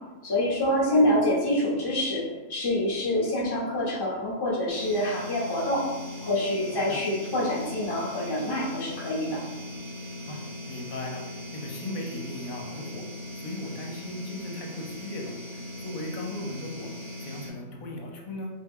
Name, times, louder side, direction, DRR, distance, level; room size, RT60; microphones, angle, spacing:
voice 1, 0.2-2.2 2.5-5.8 6.2-9.4, left 1 dB, 25° left, -6 dB, 0.6 m, -26 dB
sound 1, 4.7-17.5, left 1 dB, 70° right, 1.3 m, -39 dB
voice 2, 10.2-13.0 13.3-16.9 17.2-18.5, left 2 dB, 70° left, 1 dB, 1.0 m, -38 dB
3.4 x 2.1 x 3.5 m, 1.2 s
omnidirectional pair, 1.6 m